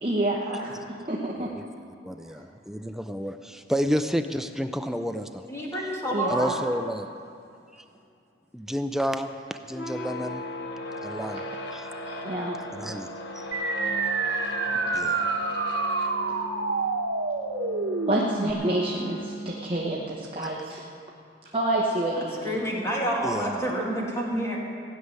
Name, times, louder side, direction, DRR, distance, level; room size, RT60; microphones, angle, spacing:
voice 1, 0.0-1.5 6.1-6.5 12.1-13.0 18.0-20.8 21.5-22.6, right 1 dB, 30° right, -3 dB, 1.1 m, -28 dB
voice 2, 2.0-5.5 6.3-7.1 7.7-7.8 8.5-10.4 11.0-11.4 11.7-11.9 12.7-13.1 13.3-13.5 14.9-15.3 20.4-20.5 23.2-23.6, equal, ahead, 8 dB, 0.4 m, -30 dB
voice 3, 5.5-6.5 22.4-24.6, right 1 dB, 15° left, -3 dB, 2.3 m, -28 dB
sound 1, 9.7-20.0, equal, 75° left, 1.2 m, -37 dB
sound 2, 13.5-18.5, right 3 dB, 80° right, 1.1 m, -28 dB
16.0 x 6.7 x 9.6 m, 2.4 s
head